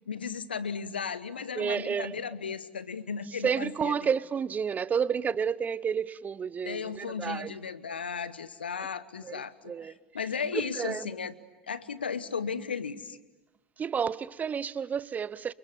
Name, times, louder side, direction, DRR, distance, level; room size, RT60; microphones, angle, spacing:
voice 1, 0.1-4.0 6.6-11.3 11.7-13.2, left 6 dB, 85° left, 1.3 m, -35 dB
voice 2, 1.6-2.2 3.4-7.5 9.2-10.0 10.7-11.1 13.8-15.5, right 7 dB, 30° right, 1.0 m, -30 dB
30.0 x 27.5 x 7.2 m
hypercardioid pair, 75°, 5 cm